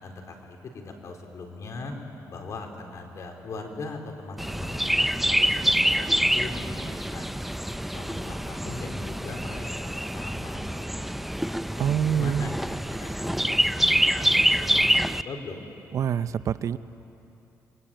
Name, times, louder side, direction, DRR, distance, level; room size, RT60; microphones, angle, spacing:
voice 1, 0.0-1.9 2.3-6.1 6.3-7.3 7.9-11.6 12.1-15.6, left 3 dB, 55° left, 3 dB, 4.1 m, -40 dB
Chirp tweet, 4.4-15.2, equal, ahead, 0.6 m, -26 dB
voice 2, 11.8-12.5 15.9-16.8, right 8 dB, 60° right, 13 dB, 0.7 m, -25 dB
29.0 x 22.5 x 9.0 m, 2.9 s
cardioid pair, 95°, 6 cm